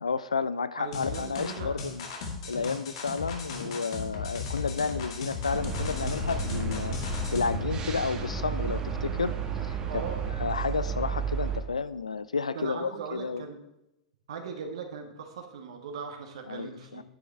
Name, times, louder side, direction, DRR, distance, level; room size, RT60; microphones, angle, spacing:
voice 1, 0.0-2.1 2.5-10.0 10.4-13.4 16.5-17.0, left 5 dB, 75° left, 15 dB, 0.4 m, -31 dB
voice 2, 0.8-1.9 9.9-10.3 12.5-13.6 14.3-17.0, right 5 dB, 60° right, 4 dB, 1.5 m, -39 dB
sound 1, 0.9-7.6, left 4 dB, 55° left, 2.2 m, -36 dB
sound 2, 5.5-11.6, right 5 dB, 25° right, 1.6 m, -32 dB
10.0 x 9.9 x 3.4 m, 0.91 s
figure-of-eight pair, 95°, 3 cm